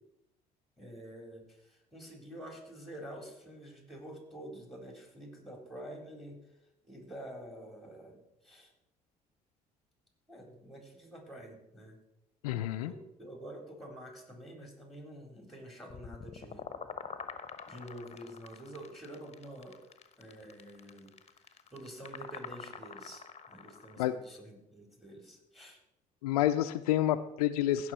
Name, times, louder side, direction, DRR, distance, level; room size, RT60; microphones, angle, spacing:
voice 1, 0.8-6.4 6.8-8.7 10.3-12.0 12.7-16.6 17.7-19.8 20.2-25.8, right 1 dB, ahead, 2 dB, 4.0 m, -48 dB
voice 2, 12.4-12.9 24.0-24.1 26.2-27.9, left 13 dB, 90° left, 12 dB, 0.4 m, -29 dB
sound 1, 15.9-24.0, left 6 dB, 35° left, 1.0 m, -46 dB
15.5 x 6.2 x 4.3 m, 0.84 s
hypercardioid pair, 55°, 19 cm